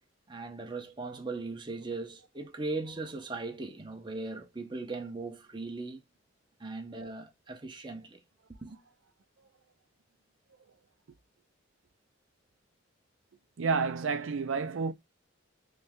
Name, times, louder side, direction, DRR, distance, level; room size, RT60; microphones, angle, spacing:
voice 1, 0.3-6.0 6.6-8.2 8.6-8.8, right 3 dB, 25° right, 0.7 m, -39 dB
voice 2, 13.6-14.9, right 5 dB, 85° right, 0.5 m, -30 dB
3.2 x 2.7 x 3.5 m
head